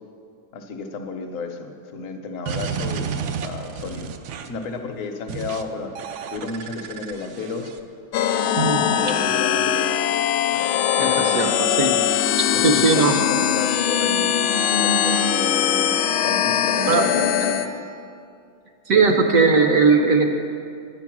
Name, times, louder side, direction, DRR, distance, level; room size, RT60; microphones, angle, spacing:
voice 1, 0.5-3.1 3.4-4.1 4.4-5.9 6.3-7.7 8.6-10.1 10.5-10.7 11.0-11.4 12.5-15.9 16.2-17.7, left 3 dB, 55° left, 3 dB, 1.0 m, -32 dB
sound 1, 2.5-4.6 5.3-5.6 6.0-7.8, right 6 dB, 85° right, 1.4 m, -31 dB
sound 2, 8.1-17.7, left 9 dB, 85° left, 1.4 m, -21 dB
voice 2, 11.0-11.5 11.8-12.0 12.6-13.1 16.9-17.0 18.9-20.3, right 4 dB, 60° right, 4 dB, 0.9 m, -18 dB
10.0 x 9.7 x 6.0 m, 2.4 s
omnidirectional pair, 2.3 m